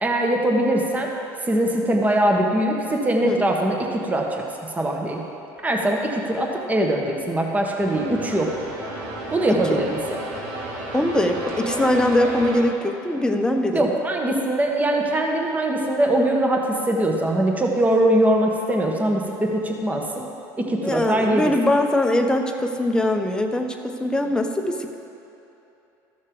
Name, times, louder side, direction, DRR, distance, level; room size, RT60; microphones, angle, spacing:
voice 1, 0.0-1.1 1.4-4.4 4.7-5.2 5.6-8.5 9.3-10.2 13.7-20.3 20.6-21.5, right 1 dB, 15° right, 1 dB, 1.1 m, -22 dB
sound 1, 7.8-12.6, right 1 dB, 60° right, 2.0 m, -32 dB
voice 2, 9.5-9.8 10.9-13.8 20.8-25.0, left 1 dB, 10° left, 4 dB, 0.8 m, -22 dB
13.5 x 6.4 x 3.8 m, 2.9 s
supercardioid pair, 90°, 9 cm